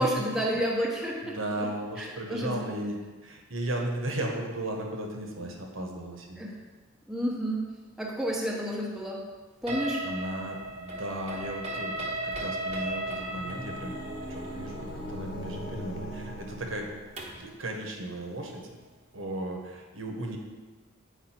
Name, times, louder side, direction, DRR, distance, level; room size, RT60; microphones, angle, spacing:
voice 1, 0.0-1.7 2.0-2.7 6.4-6.5 7.1-7.6 8.0-9.2 9.6-10.0, equal, ahead, -4 dB, 1.0 m, -30 dB
voice 2, 1.2-6.5 10.0-13.9 14.3-16.9 17.4-18.8 19.1-20.4, right 1 dB, 75° right, 1 dB, 1.1 m, -35 dB
sound 1, 9.7-17.5, right 1 dB, 30° right, 1.0 m, -36 dB
sound 2, 12.7-17.4, equal, 50° left, 1.0 m, -40 dB
8.1 x 4.9 x 4.4 m, 1.4 s
head